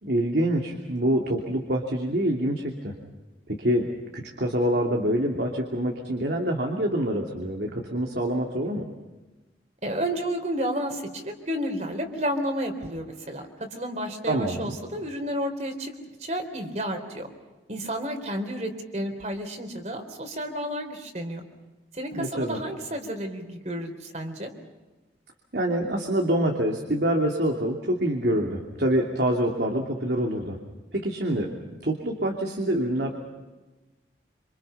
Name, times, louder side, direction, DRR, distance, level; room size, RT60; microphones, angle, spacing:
voice 1, 0.0-2.9 3.5-8.8 14.3-14.7 22.1-22.6 25.5-30.6 30.9-31.5 31.8-33.2, right 1 dB, 70° right, 1 dB, 2.8 m, -26 dB
voice 2, 9.8-15.9 16.2-17.3 17.7-21.4 21.9-24.5, equal, 40° right, 5 dB, 3.9 m, -31 dB
27.5 x 27.5 x 5.8 m, 1.2 s
head